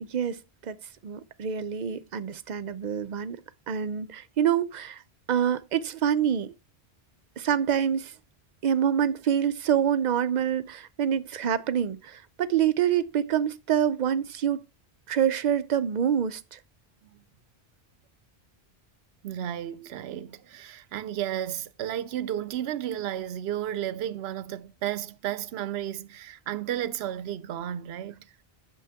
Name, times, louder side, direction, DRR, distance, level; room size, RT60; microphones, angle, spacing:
voice 1, 0.0-0.8 1.0-3.4 3.7-5.0 5.3-6.5 7.4-8.1 8.6-14.6 15.1-16.6, right 9 dB, 55° right, 0.6 m, -26 dB
voice 2, 19.2-28.3, right 11 dB, 80° right, 0.8 m, -33 dB
8.3 x 6.3 x 3.5 m
omnidirectional pair, 1.0 m